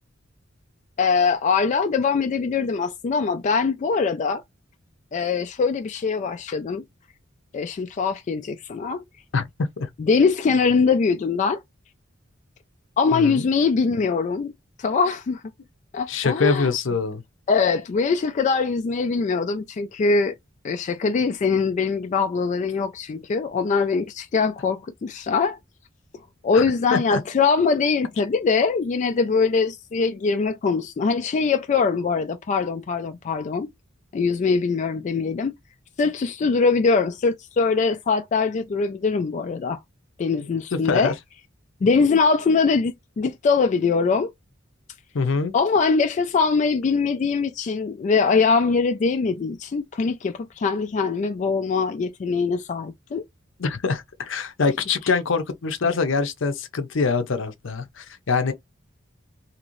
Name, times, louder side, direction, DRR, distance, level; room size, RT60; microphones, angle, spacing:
voice 1, 1.0-4.4 5.1-6.8 7.5-9.0 10.0-11.6 13.0-14.5 14.8-15.4 15.9-16.7 17.5-20.3 20.6-25.6 26.4-33.7 34.1-35.5 36.0-39.8 40.2-41.1 41.8-44.3 45.5-53.2, left 4 dB, 40° left, 0.3 m, -22 dB
voice 2, 13.1-13.5 16.1-17.2 26.5-26.6 26.9-27.2 40.7-41.1 45.1-45.5 53.6-58.5, left 4 dB, 70° left, 0.6 m, -24 dB
2.8 x 2.6 x 3.0 m
head